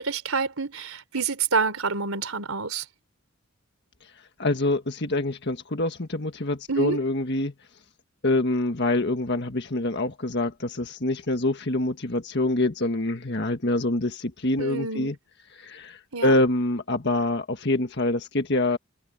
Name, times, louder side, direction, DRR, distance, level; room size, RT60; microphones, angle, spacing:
voice 1, 0.0-2.8 6.7-7.0 14.6-15.2 16.1-16.3, right 4 dB, 85° right, 3.6 m, -28 dB
voice 2, 4.4-7.5 8.2-15.2 15.6-18.8, left 2 dB, 55° left, 1.6 m, -25 dB
head